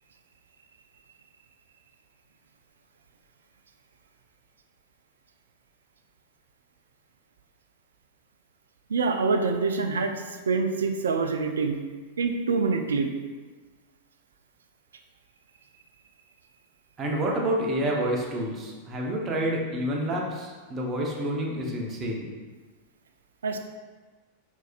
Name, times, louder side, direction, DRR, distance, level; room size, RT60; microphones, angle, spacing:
voice 1, 8.9-11.8 12.2-13.1 23.4-23.6, right 4 dB, 70° right, 5 dB, 0.4 m, -26 dB
voice 2, 17.0-22.3, right 1 dB, 25° right, -2 dB, 0.9 m, -28 dB
4.6 x 4.4 x 2.4 m, 1.4 s
figure-of-eight pair, 90°, 0 cm